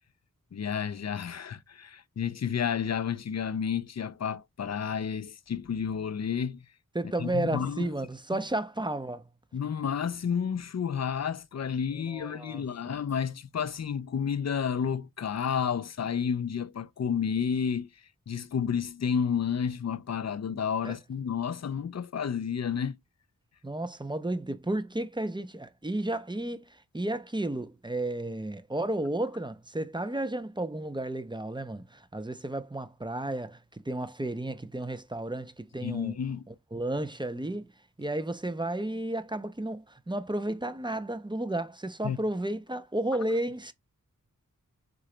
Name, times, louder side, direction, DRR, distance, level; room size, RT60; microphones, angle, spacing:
voice 1, 0.5-6.7 7.2-7.9 9.5-17.9 18.3-23.0 35.8-36.4 42.0-42.2, left 7 dB, 55° left, 0.4 m, -31 dB
voice 2, 6.9-9.3 12.1-13.0 20.8-20.9 23.6-36.2 36.5-37.7 38.0-43.7, right 1 dB, 15° right, 0.5 m, -33 dB
3.8 x 3.8 x 3.2 m
wide cardioid pair, 55°, 33 cm